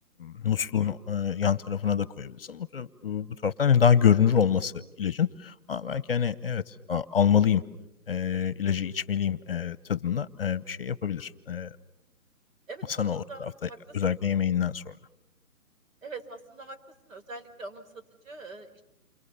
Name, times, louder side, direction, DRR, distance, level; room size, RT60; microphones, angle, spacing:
voice 1, 0.2-4.7 5.0-7.6 8.1-11.7 12.9-14.9, left 8 dB, 40° left, 18 dB, 1.0 m, -26 dB
voice 2, 12.7-13.9 16.0-16.8 17.0-18.8, right 3 dB, 60° right, 6 dB, 4.8 m, -43 dB
29.0 x 25.5 x 6.9 m, 0.85 s
hypercardioid pair, 150°, 43 cm